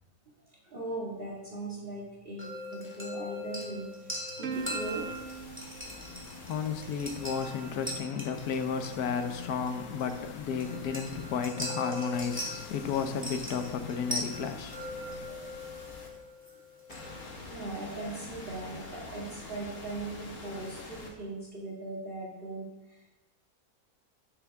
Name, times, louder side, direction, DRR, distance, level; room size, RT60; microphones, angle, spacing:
voice 1, 0.5-5.1 6.0-6.3 15.1-15.7 16.1-16.2 16.9-17.0 17.4-23.1, right 2 dB, 35° right, 2.2 m, -40 dB
sound 1, 2.4-17.3, equal, 5° right, 2.2 m, -41 dB
Plucked string instrument, 4.4-7.2, right 6 dB, 60° right, 0.9 m, -42 dB
sound 2, 4.5-8.0 8.3-11.5 12.1-16.1 16.9-21.1, left 3 dB, 55° left, 1.8 m, -48 dB
voice 2, 5.8-15.3, left 6 dB, 75° left, 1.3 m, -33 dB
12.5 x 7.2 x 3.5 m
omnidirectional pair, 1.6 m